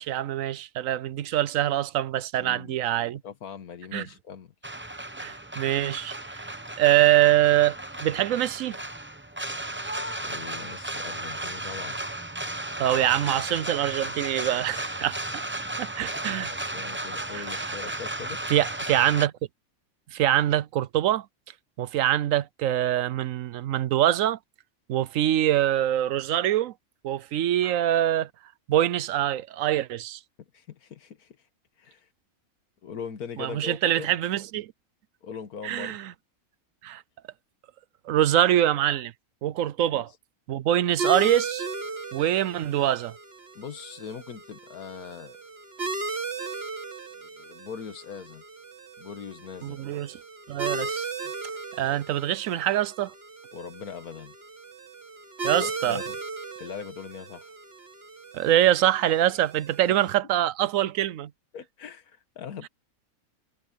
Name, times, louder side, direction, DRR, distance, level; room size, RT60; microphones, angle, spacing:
voice 1, 0.0-3.2 3.9-4.1 5.2-6.4 6.8-7.8 8.0-8.8 12.8-15.4 15.8-16.5 17.3-17.4 18.5-19.3 20.1-21.3 21.8-24.4 24.9-26.7 27.0-28.3 28.7-30.2 33.4-34.7 35.6-36.1 36.8-37.0 38.1-39.1 39.4-40.1 40.5-41.6 42.1-43.1 49.6-50.2 50.5-51.1 51.8-53.1 55.4-56.0 58.3-61.3, right 12 dB, 70° right, 1.0 m, -24 dB
voice 2, 2.3-2.8 3.2-4.5 10.3-12.0 16.3-18.4 30.4-31.4 31.8-32.1 32.8-34.1 35.2-36.0 39.9-40.0 43.6-45.4 47.0-48.4 49.0-49.8 53.5-54.4 55.6-56.2 56.6-57.5 61.5-62.7, left 7 dB, 90° left, 1.8 m, -41 dB
sound 1, 4.6-19.3, right 1 dB, 10° right, 0.6 m, -34 dB
sound 2, 41.0-60.1, right 3 dB, 45° right, 1.9 m, -36 dB
omnidirectional pair, 1.5 m